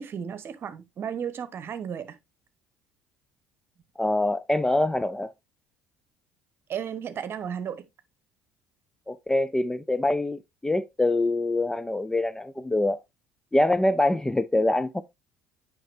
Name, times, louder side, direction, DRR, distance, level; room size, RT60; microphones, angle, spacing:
voice 1, 0.0-2.2 6.7-7.9, right 8 dB, 40° right, 1.1 m, -34 dB
voice 2, 4.0-5.3 9.1-13.0 13.5-15.0, left 2 dB, 10° left, 0.4 m, -24 dB
9.0 x 5.4 x 2.6 m
figure-of-eight pair, 60°, 6 cm